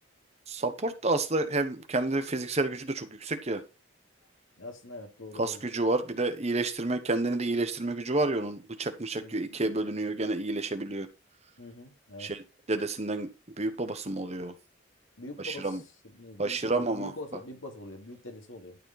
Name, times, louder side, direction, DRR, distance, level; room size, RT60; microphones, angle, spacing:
voice 1, 0.5-3.6 5.4-11.1 12.2-12.4 12.7-13.3 13.6-14.5 15.4-15.8 16.4-17.1, right 2 dB, 35° right, 1.0 m, -29 dB
voice 2, 4.6-5.6 9.2-9.5 11.6-12.3 15.2-18.8, left 2 dB, 85° left, 2.4 m, -44 dB
12.0 x 4.4 x 4.3 m
head